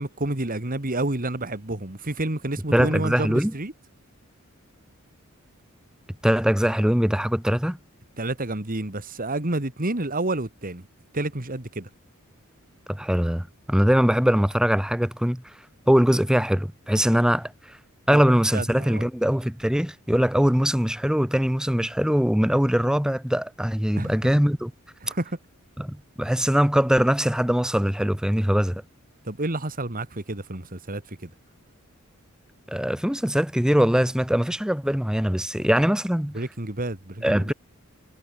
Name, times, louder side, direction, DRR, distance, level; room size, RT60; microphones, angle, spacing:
voice 1, 0.0-3.7 8.2-10.9 11.1-11.9 18.1-18.2 18.5-19.0 24.0-24.1 25.0-25.4 29.2-31.3 36.3-37.5, right 2 dB, 40° right, 2.4 m, -29 dB
voice 2, 2.7-3.5 6.2-7.8 12.9-15.4 15.9-17.8 18.1-24.7 25.8-28.8 32.7-36.4 37.2-37.5, equal, 5° right, 0.7 m, -22 dB
head